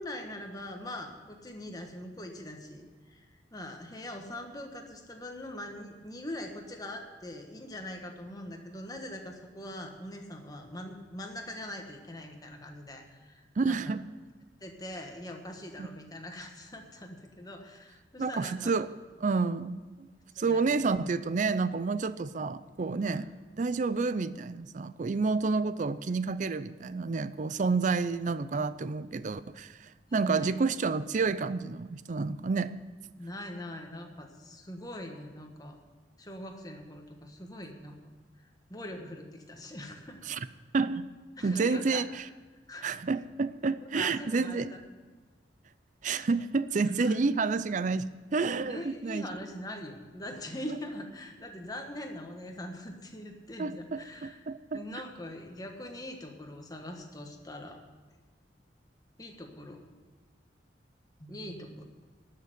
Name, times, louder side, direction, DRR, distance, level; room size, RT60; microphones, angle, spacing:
voice 1, 0.0-13.9 14.6-18.7 20.4-20.7 23.0-23.2 30.1-30.5 33.1-35.8 36.2-37.9 38.4-40.2 41.4-42.0 42.7-42.9 43.9-44.8 46.8-47.2 48.7-54.4 54.7-57.8 59.2-59.8 61.2-61.8, left 1 dB, 20° left, 3 dB, 1.4 m, -42 dB
voice 2, 13.6-14.0 15.8-15.9 18.2-18.9 19.2-20.1 20.4-23.3 23.6-32.7 40.3-40.4 40.7-41.1 41.4-42.2 42.8-44.7 46.0-49.3 53.6-54.8, right 4 dB, 45° right, 15 dB, 0.4 m, -29 dB
12.0 x 6.7 x 9.3 m, 1.3 s
head